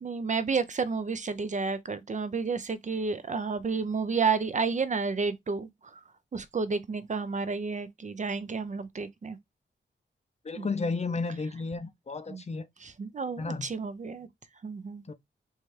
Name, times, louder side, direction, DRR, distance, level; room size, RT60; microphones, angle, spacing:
voice 1, 0.0-6.0 6.3-9.4 10.6-10.7 12.3-12.4 12.8-14.3 14.6-15.1, right 5 dB, 40° right, 0.4 m, -31 dB
voice 2, 10.4-12.7 13.4-13.7 15.1-15.2, left 4 dB, 35° left, 0.5 m, -32 dB
4.1 x 2.3 x 3.1 m
wide cardioid pair, 95°, 20 cm